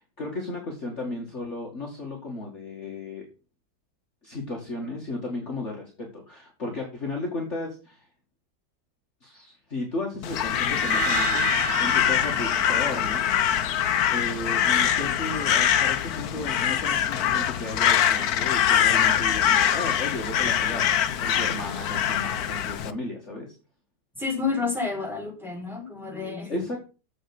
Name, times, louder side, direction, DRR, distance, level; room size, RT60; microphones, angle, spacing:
voice 1, 0.2-3.3 4.2-8.1 9.2-13.6 14.1-23.5 26.5-26.8, left 2 dB, 40° left, -1 dB, 2.4 m, -34 dB
Crow, 10.2-22.9, left 10 dB, 65° left, 1.2 m, -23 dB
sound 1, 10.5-13.7, right 4 dB, 85° right, 2.4 m, -32 dB
voice 2, 24.1-26.7, left 4 dB, ahead, -5 dB, 6.5 m, -30 dB
9.6 x 7.6 x 6.0 m, 0.35 s
omnidirectional pair, 1.9 m